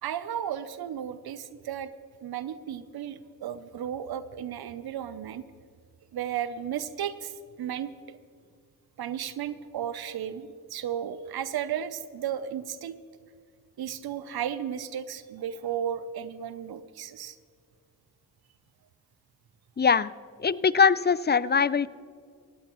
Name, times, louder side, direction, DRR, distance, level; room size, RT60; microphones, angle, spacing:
voice 1, 0.0-1.9 2.2-5.4 6.1-7.3 7.6-8.2 9.0-13.0 13.8-17.4, right 9 dB, 85° right, 13 dB, 0.6 m, -34 dB
voice 2, 19.8-20.1 20.4-21.9, left 6 dB, 30° left, 18 dB, 0.5 m, -22 dB
18.0 x 15.5 x 3.1 m, 2.1 s
cardioid pair, 40°, 37 cm